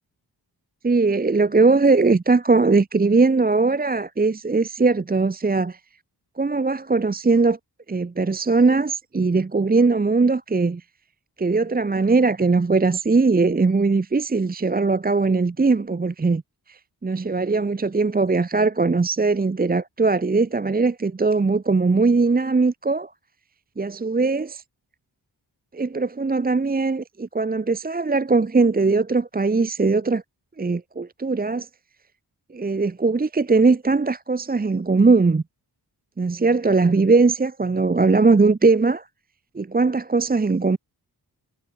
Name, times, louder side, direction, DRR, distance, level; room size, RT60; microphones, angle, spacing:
voice 1, 0.8-5.8 6.4-7.6 7.9-10.8 11.4-16.4 16.7-23.1 23.8-24.6 25.7-30.2 30.6-31.7 32.5-35.4 36.2-39.0 39.5-40.8, right 3 dB, 25° right, 0.8 m, -20 dB
wide cardioid pair, 95°, 40 cm